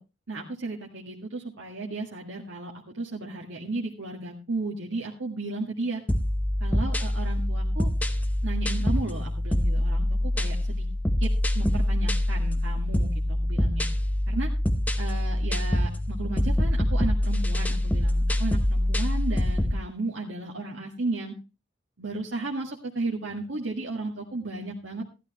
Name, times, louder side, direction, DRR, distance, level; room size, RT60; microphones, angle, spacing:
voice 1, 0.3-6.0 6.6-7.9 8.4-10.1 10.4-10.9 11.2-13.9 14.3-14.5 15.0-21.3 22.0-25.1, right 2 dB, 80° right, -2 dB, 1.8 m, -34 dB
sound 1, 6.1-19.8, left 1 dB, 10° left, 0.8 m, -25 dB
14.0 x 12.0 x 3.0 m, 0.28 s
head